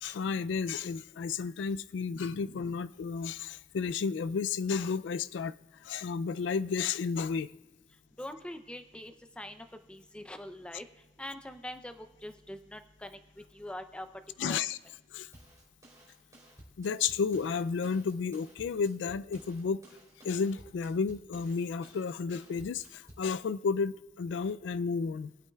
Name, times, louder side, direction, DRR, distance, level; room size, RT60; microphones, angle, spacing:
voice 1, 0.0-5.5 5.8-7.5 14.4-14.8 15.1-15.3 16.8-19.8 20.2-25.3, left 5 dB, 70° left, 15 dB, 0.3 m, -32 dB
voice 2, 8.2-10.9 11.2-14.1 14.4-14.6, left 1 dB, 5° left, 8 dB, 0.5 m, -43 dB
sound 1, 15.3-23.3, right 1 dB, 20° right, 3.1 m, -56 dB
20.0 x 8.3 x 2.3 m, 1.2 s
head